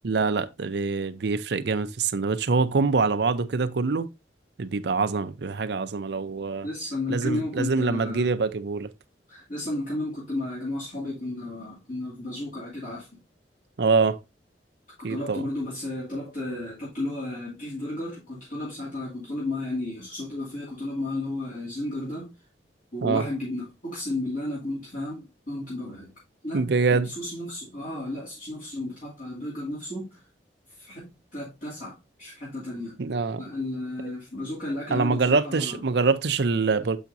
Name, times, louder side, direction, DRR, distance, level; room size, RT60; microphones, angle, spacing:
voice 1, 0.0-4.1 4.6-6.7 7.1-8.9 13.8-14.2 15.0-15.5 23.0-23.2 26.5-27.1 33.0-33.4 34.0-34.1 34.9-37.0, right 4 dB, 65° right, 0.6 m, -25 dB
voice 2, 6.6-8.3 9.3-13.2 15.0-22.3 22.9-26.1 26.4-26.6 26.9-30.2 30.8-33.0 33.4-35.8, left 1 dB, 50° left, 2.6 m, -33 dB
7.1 x 5.9 x 2.6 m
head